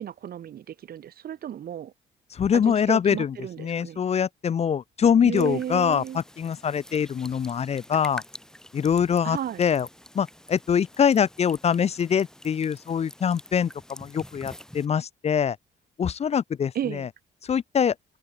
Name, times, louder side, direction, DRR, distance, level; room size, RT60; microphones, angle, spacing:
voice 1, 0.0-1.9 2.5-4.0 5.2-6.2 9.2-9.6 16.7-17.1, right 10 dB, 50° right, 0.6 m, -33 dB
voice 2, 2.3-8.2 8.7-9.9 10.1-15.6 16.0-17.1 17.4-17.9, left 7 dB, 35° left, 0.4 m, -24 dB
sound 1, 5.3-14.9, left 1 dB, 5° left, 0.7 m, -47 dB
open air
cardioid pair, 90°, 20 cm